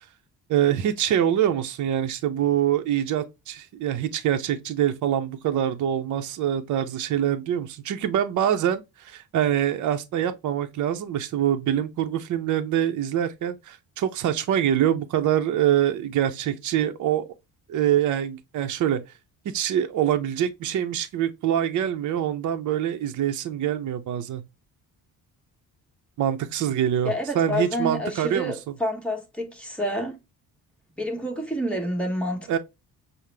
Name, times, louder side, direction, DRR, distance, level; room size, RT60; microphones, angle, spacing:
voice 1, 0.5-17.2 17.7-19.0 19.4-24.4 26.2-28.5 32.5-32.6, right 10 dB, 55° right, 0.7 m, -25 dB
voice 2, 27.0-30.2 31.0-32.6, equal, 5° left, 1.1 m, -28 dB
5.6 x 2.1 x 3.3 m
cardioid pair, 115°, 37 cm